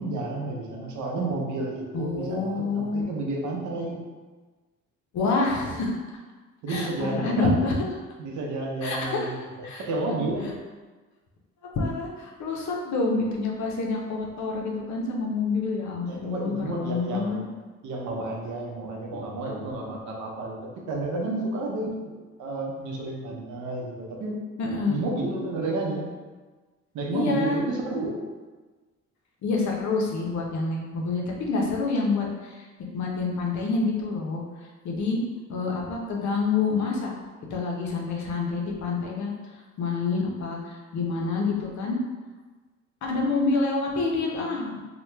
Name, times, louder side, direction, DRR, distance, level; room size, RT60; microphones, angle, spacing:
voice 1, 0.0-4.0 6.6-7.8 8.2-10.6 16.0-17.5 17.8-22.1 22.4-26.1 26.9-28.2, right 2 dB, 75° right, -1 dB, 0.7 m, -31 dB
voice 2, 1.9-3.0 5.1-5.9 6.7-7.7 8.8-9.3 9.6-9.8 11.7-17.4 24.6-25.0 27.1-27.6 29.4-32.6 32.9-34.4 34.8-35.2 35.5-37.1 37.5-39.3 39.8-42.0 43.0-44.7, left 3 dB, 65° left, -1 dB, 0.7 m, -27 dB
2.9 x 2.2 x 3.3 m, 1.3 s
cardioid pair, 90°, 30 cm